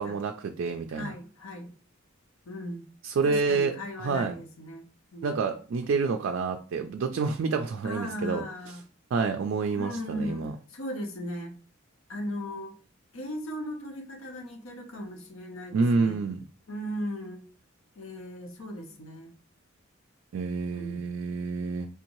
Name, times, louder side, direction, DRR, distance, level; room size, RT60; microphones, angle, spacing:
voice 1, 0.0-1.1 3.0-3.7 4.0-4.3 5.2-8.4 9.1-10.5 15.7-16.4 20.3-21.9, right 4 dB, 65° right, 5 dB, 0.3 m, -28 dB
voice 2, 0.9-1.7 2.5-2.8 3.2-4.8 5.1-5.3 7.8-8.8 9.7-11.5 12.1-12.8 13.1-16.2 16.7-17.5 18.0-19.3 20.7-21.0, equal, 80° left, 4 dB, 0.7 m, -37 dB
3.6 x 2.7 x 2.9 m, 0.41 s
head